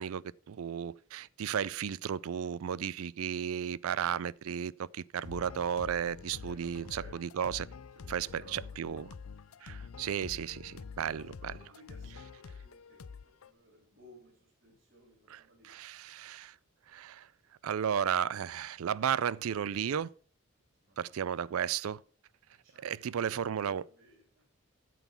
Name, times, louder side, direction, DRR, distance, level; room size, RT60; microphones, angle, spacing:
voice 1, 0.0-7.7 8.1-9.1 9.6-11.5 15.3-16.5 16.9-17.3 17.6-20.1 21.0-22.0 22.8-23.8, right 8 dB, 80° right, 0.4 m, -34 dB
sound 1, 5.2-13.5, left 5 dB, 80° left, 0.6 m, -47 dB
voice 2, 6.4-7.1 8.1-8.8 11.0-14.3 14.6-15.7 20.8-21.0 22.5-24.4, right 1 dB, 50° right, 3.5 m, -58 dB
9.1 x 8.3 x 5.6 m
head